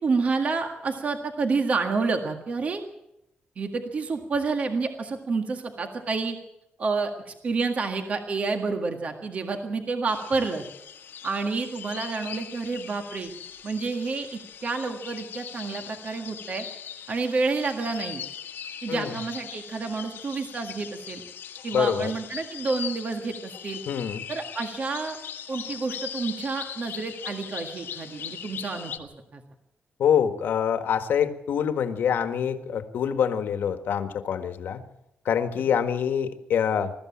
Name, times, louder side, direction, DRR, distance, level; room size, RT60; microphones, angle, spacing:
voice 1, 0.0-2.8 3.5-6.4 6.8-10.6 11.2-13.3 13.6-16.6 17.1-18.2 18.8-21.2 21.6-23.8 24.3-25.2 25.5-29.4, right 4 dB, 40° right, 5 dB, 1.8 m, -29 dB
sound 1, 10.1-29.0, left 9 dB, 85° left, 1.7 m, -40 dB
voice 2, 18.9-19.2 21.7-22.1 23.9-24.2 30.0-34.8 35.2-36.9, left 8 dB, 70° left, 8 dB, 1.8 m, -25 dB
21.5 x 14.0 x 8.8 m, 0.84 s
wide cardioid pair, 160°, 4 cm